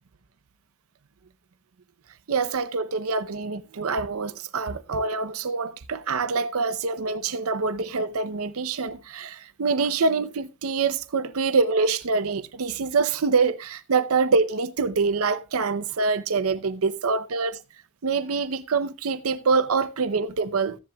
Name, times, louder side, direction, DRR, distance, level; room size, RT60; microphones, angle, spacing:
voice 1, 2.3-17.6 18.0-20.8, right 4 dB, 75° right, 0.6 m, -25 dB
14.5 x 10.5 x 2.2 m
head